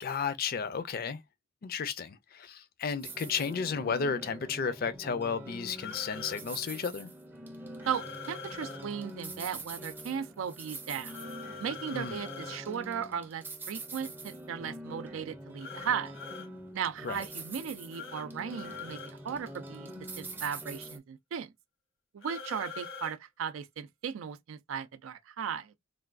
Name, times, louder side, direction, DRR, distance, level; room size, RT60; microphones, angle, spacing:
voice 1, 0.0-1.2 1.6-7.1 11.9-12.2 17.0-17.2, left 6 dB, 50° left, 0.4 m, -33 dB
sound 1, 3.0-21.0, right 1 dB, 10° right, 0.5 m, -44 dB
sound 2, 5.8-6.4 7.8-8.8 11.1-12.6 15.6-16.5 17.9-18.2 18.5-19.1 22.2-23.1, left 5 dB, 80° left, 0.9 m, -43 dB
voice 2, 7.9-11.2 11.6-16.2 16.7-19.0 19.2-19.9 20.2-21.5 22.1-25.7, right 7 dB, 80° right, 0.4 m, -36 dB
3.3 x 2.2 x 2.3 m
head